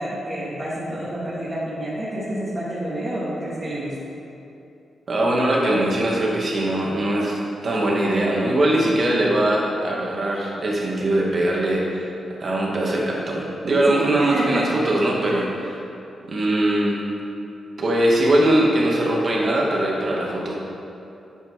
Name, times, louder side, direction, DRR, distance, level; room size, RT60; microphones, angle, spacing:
voice 1, 0.0-4.0 13.9-14.7 15.3-15.4, right 1 dB, 25° right, -10 dB, 2.5 m, -29 dB
voice 2, 5.1-12.1 12.4-15.4 16.3-17.0 17.8-20.5, right 1 dB, 45° right, -3 dB, 2.1 m, -21 dB
10.5 x 8.2 x 4.9 m, 2.7 s
wide cardioid pair, 115°, 0 cm